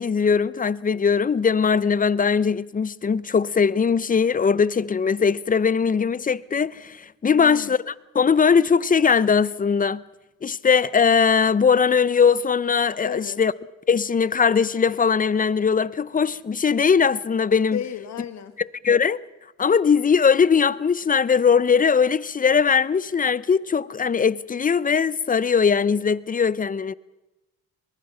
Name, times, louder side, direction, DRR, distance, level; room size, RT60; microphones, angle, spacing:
voice 1, 0.0-10.0 10.4-13.5 13.9-17.8 18.6-19.2 19.6-26.9, left 6 dB, 30° left, 0.7 m, -20 dB
voice 2, 7.3-7.7 13.0-13.4 17.7-18.6, left 9 dB, 60° left, 1.9 m, -33 dB
22.5 x 21.5 x 5.7 m
cardioid pair, 90°, 30 cm